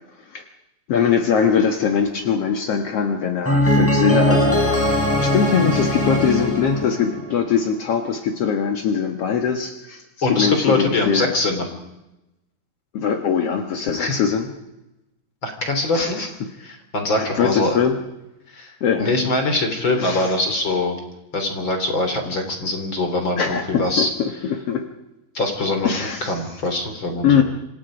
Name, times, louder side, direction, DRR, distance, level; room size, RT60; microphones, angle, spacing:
voice 1, 0.9-4.5 5.2-11.3 12.9-14.5 15.9-16.5 17.2-17.9 18.8-19.1 20.0-20.3 23.4-24.8 25.8-26.3 27.2-27.4, left 7 dB, 80° left, 4 dB, 1.3 m, -21 dB
sound 1, 3.4-7.5, left 1 dB, 5° left, 5.8 m, -20 dB
voice 2, 10.2-11.7 13.9-14.2 15.4-16.3 16.6-17.8 18.5-21.0 21.3-24.1 25.3-25.9 26.2-27.4, left 2 dB, 30° left, 5 dB, 3.4 m, -23 dB
27.0 x 26.5 x 5.1 m, 0.94 s
omnidirectional pair, 4.9 m